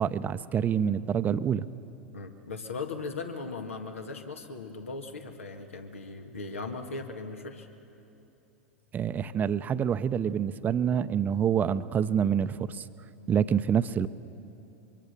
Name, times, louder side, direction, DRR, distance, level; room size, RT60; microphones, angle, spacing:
voice 1, 0.0-1.7 8.9-12.9 13.3-14.1, right 8 dB, 25° right, 13 dB, 0.7 m, -27 dB
voice 2, 2.1-7.7, left 3 dB, 80° left, 5 dB, 1.9 m, -38 dB
24.5 x 23.5 x 6.9 m, 2.8 s
figure-of-eight pair, 95°, 7 cm